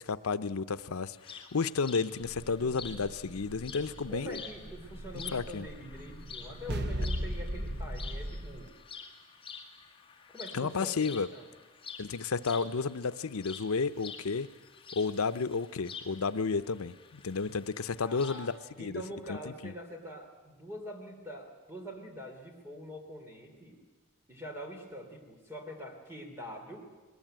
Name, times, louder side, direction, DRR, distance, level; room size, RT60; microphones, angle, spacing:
voice 1, 0.0-4.4 5.1-5.7 7.0-7.1 10.5-11.3 12.0-14.5 15.0-19.0 19.3-19.7, left 4 dB, 90° left, 12 dB, 0.7 m, -32 dB
sound 1, 1.2-18.5, left 6 dB, 25° left, 1.9 m, -49 dB
sound 2, 2.2-8.7, right 1 dB, 50° right, 1.0 m, -39 dB
voice 2, 4.1-8.8 10.3-11.5 18.0-18.5 18.8-23.8 24.3-26.9, equal, 10° right, 3 dB, 3.4 m, -44 dB
21.5 x 20.5 x 9.1 m, 1.3 s
head